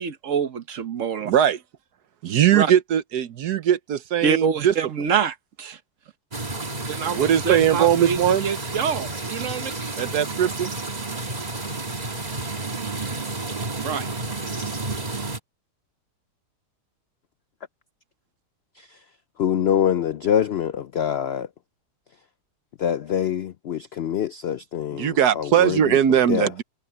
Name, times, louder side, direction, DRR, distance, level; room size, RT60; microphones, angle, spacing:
voice 1, 0.0-1.3 2.5-2.7 4.2-5.8 6.9-9.7 13.8-14.1, right 7 dB, 55° right, 1.3 m, -26 dB
voice 2, 1.3-1.6 2.2-4.7 7.1-8.4 10.0-10.7 25.0-26.6, right 10 dB, 75° right, 1.4 m, -20 dB
sound 1, 6.3-15.4, right 3 dB, 25° right, 1.7 m, -31 dB
voice 3, 18.7-19.0 19.4-21.5 22.8-26.5, left 9 dB, 75° left, 0.5 m, -25 dB
omnidirectional pair, 1.7 m